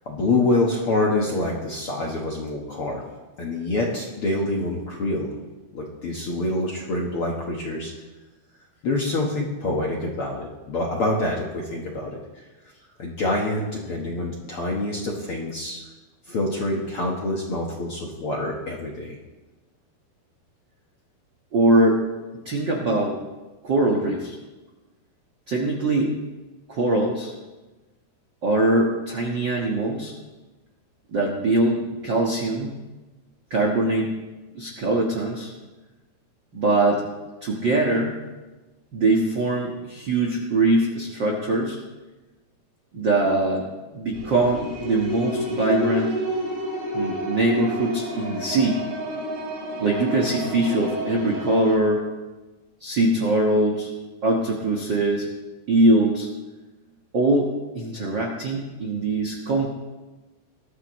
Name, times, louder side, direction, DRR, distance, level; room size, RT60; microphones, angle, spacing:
voice 1, 0.0-3.0 3.4-5.3 5.7-7.9 8.8-12.4 13.0-15.9 16.2-19.2, left 2 dB, 60° left, -2 dB, 1.4 m, -26 dB
voice 2, 21.5-22.0 22.4-23.2 23.6-24.3 25.5-26.1 26.7-27.3 28.4-30.1 31.1-32.8 33.5-34.1 34.5-35.5 36.5-37.0 37.4-38.2 38.9-41.8 42.9-43.7 43.9-46.1 46.9-48.8 49.8-52.0 52.8-53.9 54.2-55.3 55.7-56.3 57.1-59.7, right 2 dB, 75° right, -1 dB, 1.0 m, -22 dB
sound 1, 44.1-51.7, equal, 40° right, 4.4 m, -30 dB
20.0 x 13.5 x 3.1 m, 1.2 s
omnidirectional pair, 4.5 m